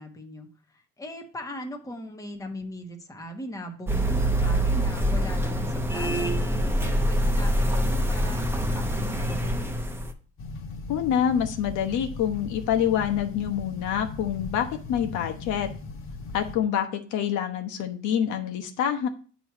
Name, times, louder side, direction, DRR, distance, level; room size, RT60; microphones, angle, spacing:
voice 1, 0.0-9.7, left 1 dB, 10° left, 3 dB, 1.2 m, -39 dB
sound 1, 3.9-10.1, equal, 10° right, 0.8 m, -25 dB
sound 2, 10.4-16.6, left 3 dB, 45° left, 1.1 m, -38 dB
voice 2, 10.9-15.7 16.3-19.1, left 9 dB, 75° left, 5 dB, 1.1 m, -26 dB
8.9 x 3.1 x 5.8 m, 0.40 s
cardioid pair, 110°, 30 cm